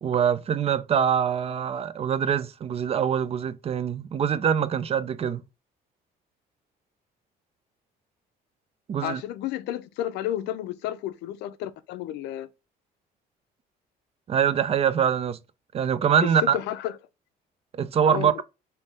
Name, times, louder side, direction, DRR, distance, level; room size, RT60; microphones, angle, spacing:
voice 1, 0.0-5.4 8.9-9.2 14.3-15.4 15.7-16.6 17.8-18.4, right 8 dB, 35° right, 0.4 m, -24 dB
voice 2, 9.0-12.5 16.2-17.0 18.0-18.4, left 12 dB, 85° left, 0.5 m, -31 dB
3.6 x 2.7 x 4.1 m
cardioid pair, 110°, 17 cm